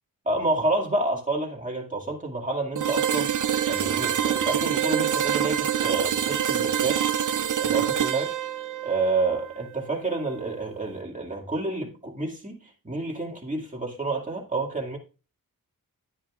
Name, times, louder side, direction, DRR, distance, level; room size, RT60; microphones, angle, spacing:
voice 1, 0.3-3.3 3.7-7.1 7.6-8.3 8.8-15.0, right 2 dB, 20° right, 2.3 m, -29 dB
sound 1, 2.8-10.6, right 9 dB, 60° right, 0.6 m, -26 dB
11.5 x 9.9 x 2.5 m
wide cardioid pair, 70°, 35 cm